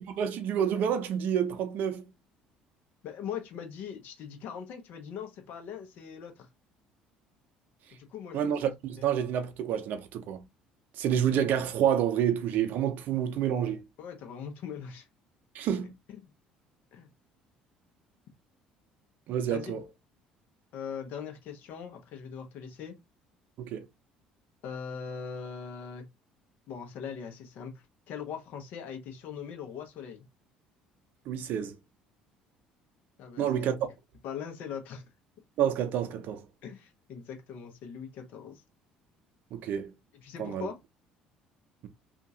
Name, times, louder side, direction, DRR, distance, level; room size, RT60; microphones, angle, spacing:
voice 1, 0.1-2.1 8.3-10.4 11.0-13.8 15.5-15.9 19.3-19.8 23.6-23.9 31.3-31.8 33.4-33.9 35.6-36.4 39.5-39.9 40.4-40.7, right 9 dB, 65° right, 0.6 m, -28 dB
voice 2, 3.0-6.5 7.9-8.5 9.0-9.1 14.0-15.1 16.1-16.3 16.9-17.1 19.5-19.8 20.7-22.9 24.6-26.0 26.7-27.7 28.1-30.3 33.2-33.7 34.2-35.0 36.6-38.6 40.2-40.8, left 7 dB, 65° left, 1.0 m, -41 dB
2.8 x 2.5 x 2.7 m
hypercardioid pair, 65°, 3 cm